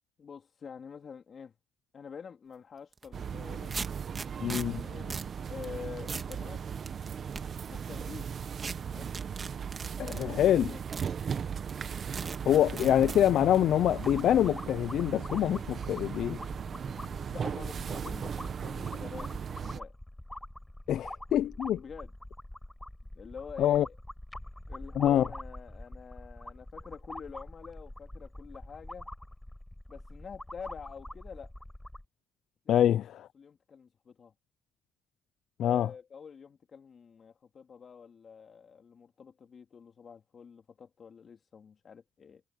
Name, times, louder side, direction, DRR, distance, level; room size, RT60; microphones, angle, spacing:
voice 1, 0.2-1.5 1.9-3.8 4.7-5.2 5.5-6.6 7.7-8.3 8.8-9.1 10.0-10.8 17.3-19.9 21.7-22.1 23.1-23.9 24.7-29.1 29.9-31.5 32.6-33.0 33.3-34.3 35.6-42.4, left 6 dB, 50° left, 2.9 m, -47 dB
sound 1, 2.9-3.1 3.7-4.6 5.1-5.3 5.6-5.7 6.1-6.4 6.9-7.4 8.6-8.7 9.1-10.2 10.9-11.1 11.7-11.8 12.2-12.4 12.8-13.2, right 4 dB, 35° right, 2.3 m, -38 dB
sound 2, 3.1-19.8, right 7 dB, 50° right, 1.2 m, -37 dB
voice 2, 4.4-4.8 10.0-10.7 12.4-16.4 20.9-21.8 23.6-23.9 25.0-25.3 32.7-33.3 35.6-35.9, left 11 dB, 75° left, 0.5 m, -25 dB
sound 3, 14.0-32.1, left 1 dB, 10° left, 4.5 m, -45 dB
cardioid pair, 90°, 0 cm